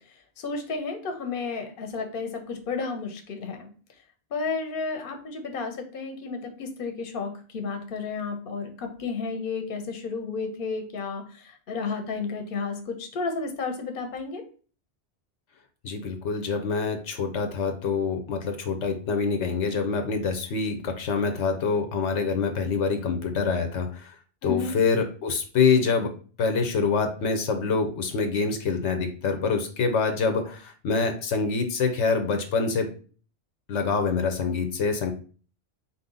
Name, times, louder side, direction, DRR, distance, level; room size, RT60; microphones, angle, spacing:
voice 1, 0.4-3.7 4.3-14.4 24.4-24.7, left 4 dB, 55° left, 5 dB, 0.9 m, -32 dB
voice 2, 15.8-24.2 24.4-26.1 26.4-32.9 33.7-35.1, left 5 dB, 85° left, 6 dB, 1.0 m, -25 dB
4.2 x 2.7 x 3.7 m, 0.39 s
omnidirectional pair, 1.2 m